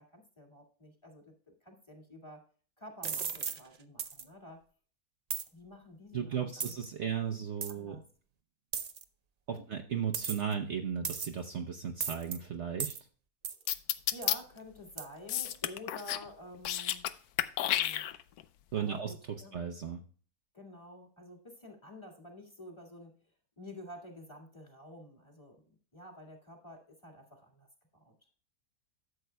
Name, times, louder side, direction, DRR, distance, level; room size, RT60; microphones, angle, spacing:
voice 1, 0.0-2.4 2.8-4.6 5.5-6.7 7.0-7.3 7.7-8.0 9.5-9.7 13.6-13.7 14.1-17.1 17.6-18.1 18.7-19.6 20.5-23.1 23.6-27.7 27.9-28.1, left 1 dB, 20° left, 0 dB, 2.0 m, -50 dB
sound 1, 3.0-3.6 4.0-4.2 5.3-5.5 6.6-6.8 7.6-7.7 8.7-9.0 10.1-10.5 11.0-11.4 12.0-12.4 12.8-13.0 13.4-13.6 14.2-14.3 15.0-15.1, right 6 dB, 75° right, 0.3 m, -36 dB
voice 2, 6.1-8.0 9.5-13.0 18.7-19.1 19.5-20.0, right 7 dB, 55° right, 3 dB, 0.9 m, -35 dB
sound 2, 13.7-14.4 15.3-16.3 16.5-17.1 17.4-18.4, left 12 dB, 85° left, 1.1 m, -31 dB
12.5 x 7.8 x 2.2 m, 0.41 s
omnidirectional pair, 1.6 m